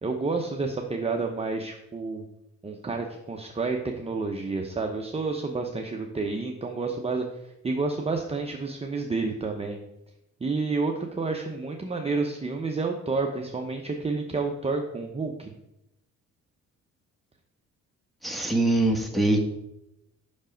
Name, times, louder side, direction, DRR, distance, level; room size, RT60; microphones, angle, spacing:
voice 1, 0.0-2.2 2.6-9.8 10.4-15.5, right 3 dB, 20° right, 2 dB, 0.7 m, -30 dB
voice 2, 18.2-19.4, right 2 dB, ahead, 1 dB, 1.3 m, -23 dB
5.9 x 5.3 x 5.1 m, 0.86 s
cardioid pair, 90°, 30 cm